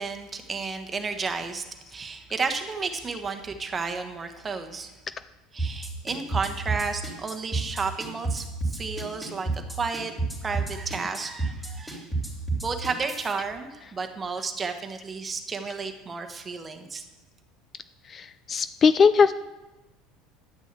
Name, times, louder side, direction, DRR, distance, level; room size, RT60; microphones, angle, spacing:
voice 1, 0.0-1.6 1.9-4.9 5.5-10.1 10.4-12.1 12.6-17.0, right 4 dB, 25° right, 6 dB, 1.2 m, -32 dB
sound 1, 5.6-13.3, right 3 dB, 5° left, 3.3 m, -29 dB
voice 2, 18.1-19.3, left 5 dB, 30° left, 14 dB, 0.3 m, -20 dB
10.5 x 6.3 x 8.2 m, 1.1 s
supercardioid pair, 120°, 0 cm